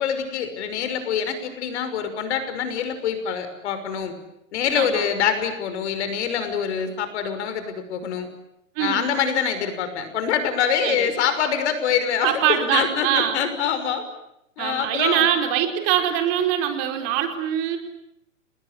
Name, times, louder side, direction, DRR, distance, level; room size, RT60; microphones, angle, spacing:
voice 1, 0.0-4.1 4.5-8.3 8.8-14.0 14.6-15.3 17.0-17.1, left 7 dB, 60° left, 9 dB, 6.0 m, -25 dB
voice 2, 4.7-5.1 8.8-9.1 10.8-11.1 12.2-13.4 14.6-17.8, right 10 dB, 35° right, 6 dB, 4.4 m, -23 dB
29.5 x 20.5 x 9.9 m, 0.81 s
hypercardioid pair, 135°, 39 cm